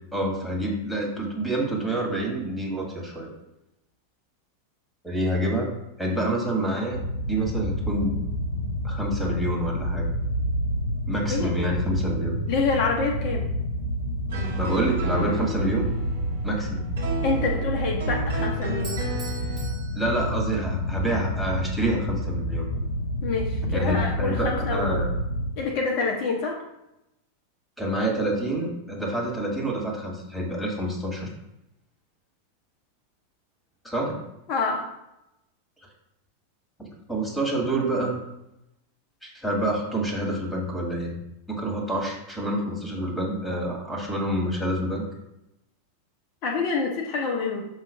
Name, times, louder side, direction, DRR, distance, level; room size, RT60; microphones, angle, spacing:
voice 1, 0.1-3.3 5.0-5.7 6.0-7.0 7.3-8.2 8.8-10.1 11.1-12.4 14.6-15.9 16.4-16.9 20.0-22.7 23.7-25.1 27.8-31.3 33.8-34.2 37.1-38.2 39.2-41.2 41.5-45.1, right 1 dB, ahead, 0 dB, 1.8 m, -27 dB
sound 1, 6.9-25.5, equal, 75° left, 0.6 m, -29 dB
voice 2, 12.5-13.5 17.2-19.0 23.2-25.1 25.6-26.6 34.5-34.8 46.4-47.7, left 4 dB, 45° left, 0 dB, 0.9 m, -27 dB
sound 2, 14.3-19.7, equal, 60° right, 1.5 m, -34 dB
Bell / Doorbell, 18.8-20.9, right 3 dB, 25° right, 1.5 m, -43 dB
6.2 x 3.2 x 5.4 m, 0.88 s
figure-of-eight pair, 90°, 0 cm